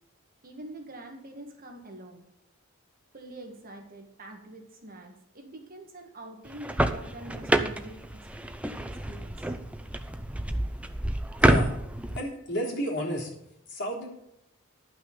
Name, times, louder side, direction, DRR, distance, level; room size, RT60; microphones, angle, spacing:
voice 1, 0.4-2.3 3.1-8.3 8.8-9.5, right 1 dB, 45° right, 2 dB, 1.8 m, -45 dB
sound 1, 6.5-12.2, right 1 dB, 5° right, 0.6 m, -28 dB
voice 2, 11.4-11.7 12.2-13.3 13.7-14.1, equal, 55° left, -3 dB, 3.5 m, -31 dB
11.5 x 6.1 x 7.1 m, 0.80 s
head